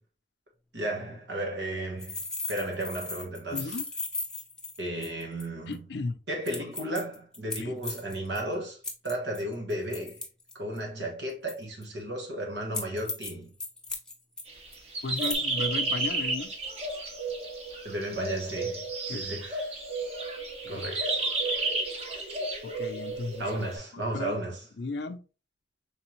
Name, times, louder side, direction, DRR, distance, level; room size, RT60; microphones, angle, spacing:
voice 1, 0.7-2.2 2.5-3.8 4.8-5.8 6.3-8.8 9.0-10.2 10.5-13.5 17.8-19.7 20.7-21.1 23.4-24.6, right 1 dB, 90° right, 1.4 m, -34 dB
sound 1, 2.0-5.4 5.7-5.8 6.5-8.4 8.8-10.8 11.5-11.8 12.7-13.3 13.6-14.4 14.7-14.8 15.2-15.3, left 2 dB, 5° left, 0.4 m, -36 dB
voice 2, 3.5-3.8 5.7-6.2 7.6-7.7 15.0-16.5 19.1-19.2 20.6-20.8 22.6-24.3 24.8-25.2, left 3 dB, 75° left, 0.5 m, -35 dB
sound 2, 14.5-23.8, right 2 dB, 35° right, 0.7 m, -32 dB
3.5 x 3.3 x 3.0 m
head